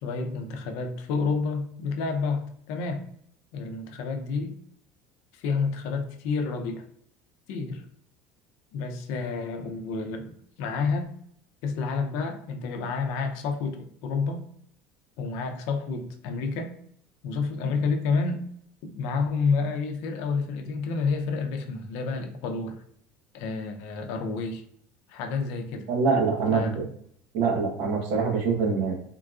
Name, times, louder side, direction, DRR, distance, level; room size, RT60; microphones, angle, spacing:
voice 1, 0.0-3.0 3.5-4.5 5.3-6.9 7.5-7.9 8.7-10.3 10.6-11.1 11.6-14.4 15.2-16.7 17.2-18.4 18.8-22.8 23.3-24.6 25.1-25.9 26.5-26.8, left 4 dB, 75° left, 0.5 m, -29 dB
voice 2, 25.9-26.8 27.3-28.9, right 5 dB, 75° right, 0.9 m, -24 dB
3.6 x 2.3 x 2.4 m
cardioid pair, 140°, 5 cm